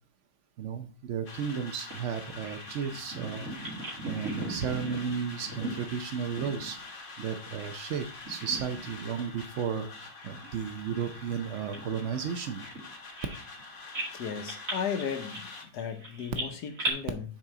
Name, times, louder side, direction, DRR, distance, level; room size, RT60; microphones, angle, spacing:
voice 1, 0.6-3.4 4.1-6.8 7.2-12.6, right 7 dB, 85° right, 7 dB, 0.6 m, -34 dB
sound 1, 1.2-15.6, left 3 dB, 35° left, 0.9 m, -46 dB
Bird vocalization bird call bird song, 1.9-7.9 8.1-9.1 9.4-9.6 10.2-13.6 13.9-16.9, right 1 dB, 45° right, 2.8 m, -39 dB
voice 2, 14.1-17.2, left 7 dB, 65° left, 6 dB, 1.3 m, -35 dB
6.3 x 4.3 x 4.8 m, 0.40 s
omnidirectional pair, 2.1 m